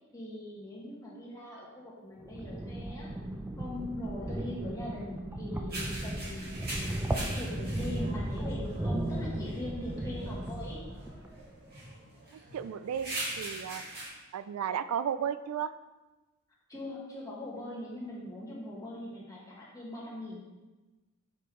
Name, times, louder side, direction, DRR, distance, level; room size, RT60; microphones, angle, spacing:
voice 1, 0.1-3.1 3.6-6.6 7.1-10.8 16.7-20.4, left 1 dB, 15° left, -5 dB, 1.4 m, -41 dB
sound 1, 2.2-11.4, right 1 dB, 10° right, 0.4 m, -36 dB
sound 2, 5.7-14.1, right 1 dB, 45° right, 2.2 m, -42 dB
voice 2, 12.5-13.8 14.3-15.7, right 8 dB, 90° right, 15 dB, 0.3 m, -34 dB
6.7 x 5.2 x 3.2 m, 1.1 s
head